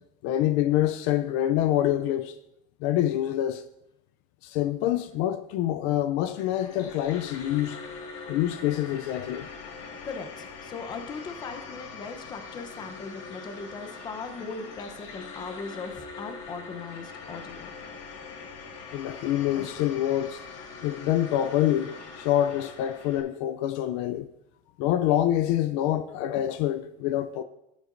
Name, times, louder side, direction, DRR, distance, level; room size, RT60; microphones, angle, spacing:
voice 1, 0.2-2.3 2.8-3.6 4.4-7.8 8.3-9.5 18.9-20.4 20.8-24.3 24.8-27.4, left 12 dB, 70° left, 0.5 m, -26 dB
sound 1, 6.2-23.2, left 4 dB, 90° left, 2.0 m, -42 dB
voice 2, 10.0-17.7, left 4 dB, 25° left, 0.8 m, -39 dB
13.5 x 8.2 x 2.6 m
cardioid pair, 170°, 19 cm